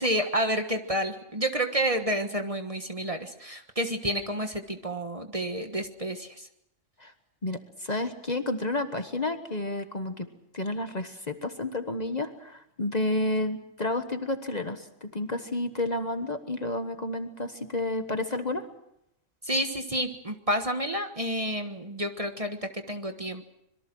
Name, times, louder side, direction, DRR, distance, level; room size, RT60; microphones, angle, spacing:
voice 1, 0.0-6.5 19.4-23.4, right 1 dB, 30° right, 6 dB, 1.4 m, -30 dB
voice 2, 7.4-10.3 10.5-18.7, left 2 dB, 35° left, 7 dB, 1.4 m, -31 dB
25.5 x 22.5 x 6.2 m, 0.80 s
omnidirectional pair, 1.3 m